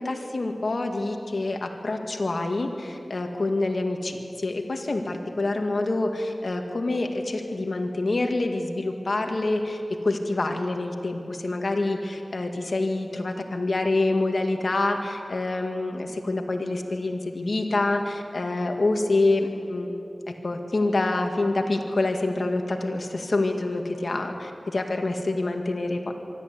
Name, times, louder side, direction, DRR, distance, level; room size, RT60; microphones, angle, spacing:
voice 1, 0.0-19.9 20.4-26.1, left 2 dB, 65° left, 4 dB, 2.0 m, -26 dB
23.5 x 13.5 x 8.4 m, 2.8 s
wide cardioid pair, 50°, 0 cm